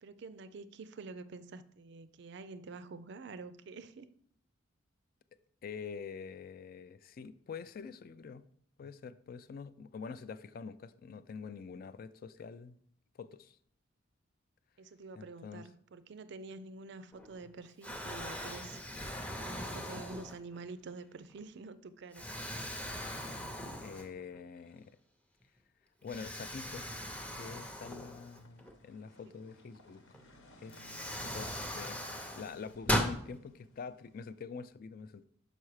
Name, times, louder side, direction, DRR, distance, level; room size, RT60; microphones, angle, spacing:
voice 1, 0.0-4.1 14.8-18.8 19.3-22.3 29.2-29.4 31.1-31.4, right 3 dB, 55° right, 0.4 m, -48 dB
voice 2, 5.6-8.4 8.8-12.8 13.1-13.6 15.2-15.6 19.9-20.0 23.2-23.5 23.8-25.0 26.0-26.9 27.4-30.0 30.6-31.0 31.3-32.1 32.3-35.2, left 5 dB, 45° left, 0.3 m, -46 dB
Explosion, 17.1-17.5 17.8-20.6 21.2-21.4 22.1-24.4 24.7-24.8 26.1-28.7 30.1-30.2 30.7-33.2, equal, 5° left, 0.6 m, -39 dB
sound 1, 27.3-34.3, left 1 dB, 65° left, 1.1 m, -59 dB
5.8 x 5.5 x 4.8 m
head